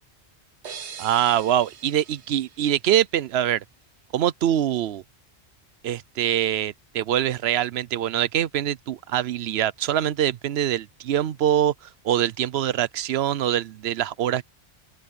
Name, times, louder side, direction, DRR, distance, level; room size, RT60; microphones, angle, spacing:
sound 1, 0.6-3.4, right 7 dB, 90° right, 1.3 m, -42 dB
voice 1, 1.0-3.6 4.1-5.0 5.8-14.4, right 11 dB, 75° right, 0.9 m, -24 dB
open air
omnidirectional pair, 1.1 m